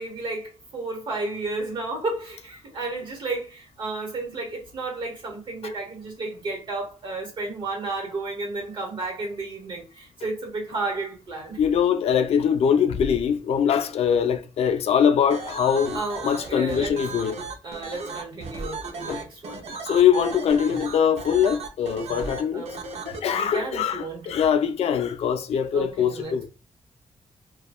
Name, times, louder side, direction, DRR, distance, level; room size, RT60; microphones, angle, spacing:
voice 1, 0.0-11.7 15.9-17.0 17.6-19.7 22.5-22.8 23.3-24.4 25.7-26.5, right 3 dB, 50° right, 1.1 m, -32 dB
voice 2, 11.6-17.4 19.1-19.2 19.8-22.7 23.1-26.5, left 8 dB, 70° left, 0.4 m, -22 dB
sound 1, 15.3-23.2, right 3 dB, 75° right, 0.5 m, -35 dB
2.9 x 2.2 x 2.3 m
wide cardioid pair, 160°, 11 cm